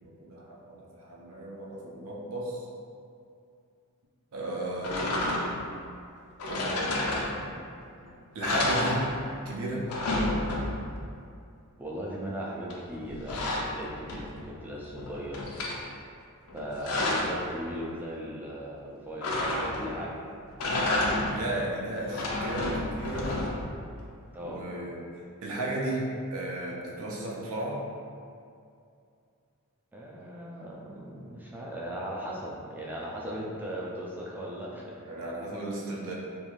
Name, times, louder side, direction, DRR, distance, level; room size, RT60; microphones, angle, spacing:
voice 1, 0.0-2.7 4.3-5.6 6.4-7.6 8.3-9.1 9.5-9.9 21.3-23.4 24.4-27.8 35.1-36.1, right 1 dB, 65° right, -4 dB, 0.5 m, -35 dB
sound 1, 4.8-5.7 6.4-7.7 8.0-8.1 8.4-9.5 9.7-11.0 12.7-14.5 14.9-15.8 16.5-17.4 19.2-20.0 20.5-21.5 22.0-23.8, left 1 dB, 75° left, 0.4 m, -30 dB
voice 2, 11.8-15.4 16.5-20.2 24.3-24.7 29.9-35.0, equal, 10° right, -5 dB, 0.3 m, -38 dB
2.6 x 2.3 x 3.0 m, 2.4 s
head